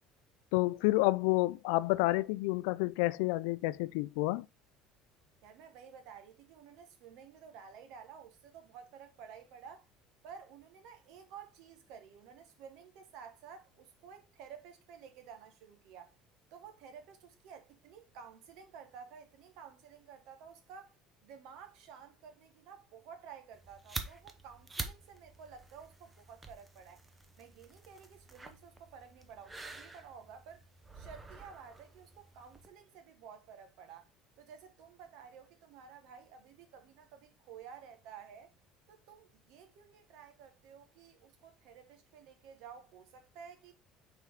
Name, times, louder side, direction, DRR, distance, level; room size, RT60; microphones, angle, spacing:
voice 1, 0.5-4.5, left 20 dB, 90° left, 0.3 m, -29 dB
voice 2, 5.4-9.9 10.2-16.2 16.5-20.9 21.2-27.0 27.4-30.6 30.9-34.1 34.4-38.5 38.9-43.7, right 7 dB, 60° right, 1.4 m, -53 dB
sound 1, 23.5-32.7, right 3 dB, 10° right, 0.6 m, -47 dB
5.8 x 4.5 x 3.6 m
cardioid pair, 175°, 0 cm